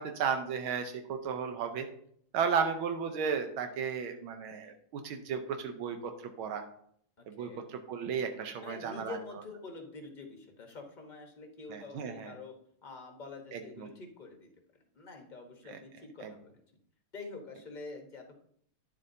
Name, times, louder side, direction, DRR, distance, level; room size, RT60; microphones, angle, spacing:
voice 1, 0.0-1.9 2.3-6.1 6.4-6.6 7.3-9.2 11.7-12.3 13.5-13.9 15.7-15.8 16.2-16.3, right 6 dB, 85° right, 6 dB, 1.6 m, -34 dB
voice 2, 7.2-7.7 8.6-12.5 12.8-14.5 14.9-16.6 17.1-18.4, left 3 dB, 35° left, 3 dB, 0.8 m, -46 dB
10.0 x 7.4 x 2.7 m, 0.65 s
omnidirectional pair, 2.2 m